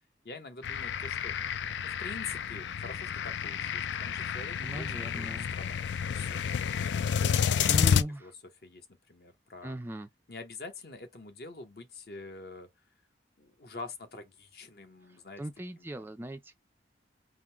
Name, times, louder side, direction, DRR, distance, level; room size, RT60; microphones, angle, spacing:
voice 1, 0.2-1.3 1.8-6.4 7.2-8.3 8.6-9.8 10.3-12.7 13.4-15.4 15.8-16.1, left 3 dB, 55° left, 0.9 m, -46 dB
sound 1, 0.6-8.0, left 8 dB, 75° left, 0.3 m, -30 dB
voice 2, 4.6-5.5 7.7-8.2 9.6-10.1 15.4-16.5, right 1 dB, 10° right, 0.4 m, -38 dB
3.7 x 2.1 x 4.4 m
head